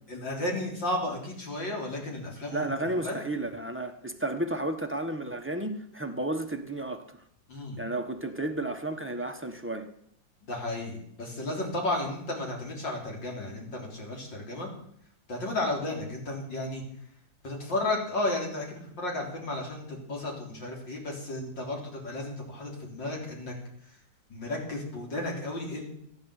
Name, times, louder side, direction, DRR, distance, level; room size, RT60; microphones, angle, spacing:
voice 1, 0.1-2.7 3.0-3.2 7.5-7.8 10.4-14.7 15.3-16.8 17.4-23.5 23.8-24.0 24.3-25.9, left 2 dB, 70° left, 4.3 m, -33 dB
voice 2, 2.5-7.0 7.8-9.9, right 1 dB, 10° right, 0.9 m, -32 dB
15.0 x 9.8 x 8.2 m
omnidirectional pair, 2.1 m